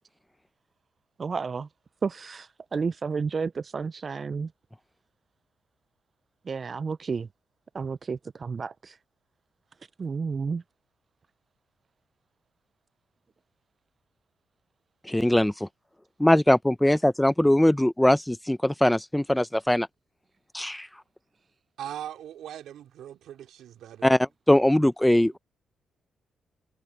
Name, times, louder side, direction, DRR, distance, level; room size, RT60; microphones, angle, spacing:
voice 1, 1.2-1.7 2.0-4.5 6.5-7.3 7.7-9.0 10.0-10.6 16.9-17.0, right 5 dB, 45° right, 0.3 m, -31 dB
voice 2, 15.1-15.7 16.2-19.9 20.5-20.9 24.0-25.4, left 1 dB, 5° left, 0.6 m, -21 dB
voice 3, 21.8-24.2, right 11 dB, 80° right, 3.8 m, -40 dB
cardioid pair, 70°, 0 cm